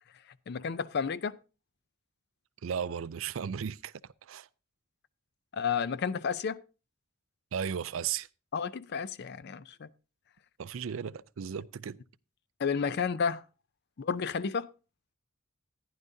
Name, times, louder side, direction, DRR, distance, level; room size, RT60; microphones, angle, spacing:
voice 1, 0.5-1.4 5.5-6.6 8.5-9.9 12.6-13.4 14.0-14.7, left 6 dB, 55° left, 0.5 m, -31 dB
voice 2, 2.6-3.9 4.3-4.5 7.5-8.3 10.6-12.0, right 7 dB, 80° right, 0.4 m, -35 dB
14.5 x 10.5 x 2.7 m
head